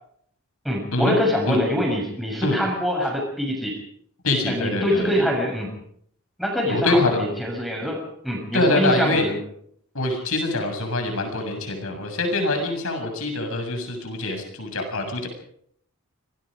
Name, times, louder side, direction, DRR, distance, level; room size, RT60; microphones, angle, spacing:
voice 1, 0.6-3.8 4.5-5.7 6.4-9.4, equal, ahead, -1 dB, 6.8 m, -24 dB
voice 2, 4.2-5.1 6.7-7.2 8.5-9.2 9.9-15.3, left 2 dB, 65° left, 4 dB, 7.2 m, -24 dB
26.0 x 20.5 x 5.1 m, 0.67 s
head